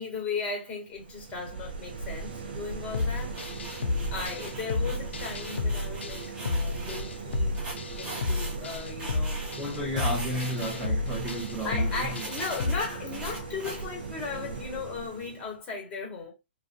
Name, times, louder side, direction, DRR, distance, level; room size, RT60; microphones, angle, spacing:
voice 1, 0.0-3.8 4.1-7.6 8.0-9.5 9.9-10.1 11.6-16.3, left 4 dB, 20° left, 1.1 m, -37 dB
sound 1, 0.9-15.6, right 4 dB, 55° right, 0.6 m, -39 dB
sound 2, 2.9-12.8, left 3 dB, 75° left, 0.3 m, -31 dB
sound 3, 3.0-7.0 7.6-9.7 10.0-14.4, right 1 dB, 15° right, 0.9 m, -42 dB
voice 2, 9.6-12.3, equal, ahead, 0.6 m, -33 dB
2.4 x 2.1 x 2.5 m
hypercardioid pair, 125°, 6 cm